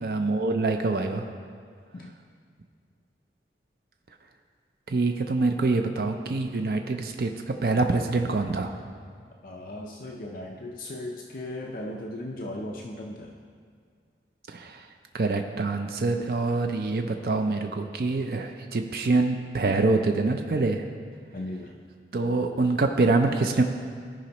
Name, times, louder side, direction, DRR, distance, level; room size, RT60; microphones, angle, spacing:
voice 1, 0.0-1.2 4.9-8.7 14.5-14.8 15.1-20.9 22.1-23.6, right 3 dB, 55° right, 5 dB, 0.4 m, -25 dB
voice 2, 9.4-13.3 21.3-21.8, left 1 dB, 50° left, 0 dB, 0.5 m, -37 dB
15.0 x 5.0 x 2.9 m, 2.1 s
head